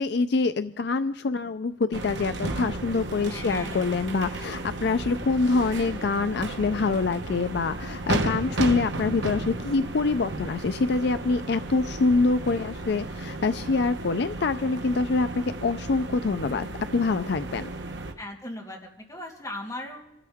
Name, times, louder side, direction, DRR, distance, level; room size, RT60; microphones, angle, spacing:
voice 1, 0.0-16.7 16.9-17.7, left 3 dB, 65° left, 11 dB, 0.5 m, -25 dB
sound 1, 1.9-18.1, right 2 dB, 75° right, 1.2 m, -34 dB
sound 2, 2.2-11.1, right 1 dB, 45° right, 3.0 m, -49 dB
voice 2, 3.3-3.9 5.6-5.7 18.2-20.0, left 1 dB, 20° left, -2 dB, 2.8 m, -38 dB
27.5 x 13.0 x 3.6 m, 0.87 s
head